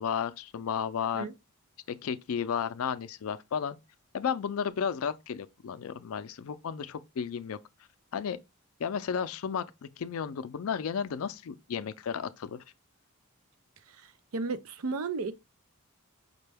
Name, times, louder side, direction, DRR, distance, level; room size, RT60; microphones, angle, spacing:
voice 1, 0.0-1.3 1.9-3.8 4.1-7.6 8.1-8.4 8.8-9.6 10.0-12.6, left 7 dB, 70° left, 0.4 m, -33 dB
voice 2, 13.9-15.3, right 4 dB, 75° right, 0.5 m, -34 dB
5.2 x 2.2 x 3.3 m
head